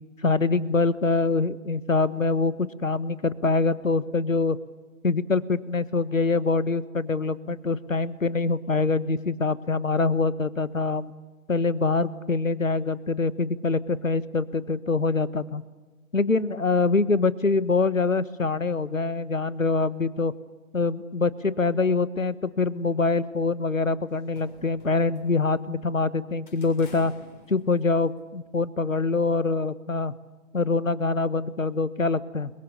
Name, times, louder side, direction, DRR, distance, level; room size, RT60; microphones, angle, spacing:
voice 1, 0.2-4.6 5.0-11.1 11.5-15.6 16.1-20.3 20.7-27.1 27.5-30.1 30.5-32.5, left 3 dB, 70° left, 16 dB, 1.4 m, -24 dB
sound 1, 24.1-26.0 26.5-28.3, left 2 dB, 35° left, 6.9 m, -51 dB
29.0 x 22.5 x 6.8 m, 1.3 s
figure-of-eight pair, 155°, 42 cm